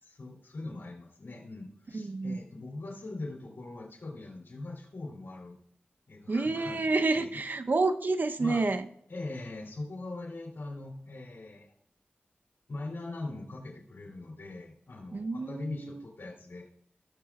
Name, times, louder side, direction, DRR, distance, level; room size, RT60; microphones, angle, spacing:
voice 1, 0.0-5.6 6.1-6.8 7.1-7.4 8.4-8.6 9.1-11.7 12.7-16.7, left 2 dB, 75° left, 0 dB, 2.9 m, -41 dB
voice 2, 1.9-2.4 6.3-8.9 15.1-16.0, right 3 dB, 55° right, 9 dB, 0.7 m, -29 dB
18.0 x 6.8 x 2.4 m, 0.67 s
wide cardioid pair, 65°, 4 cm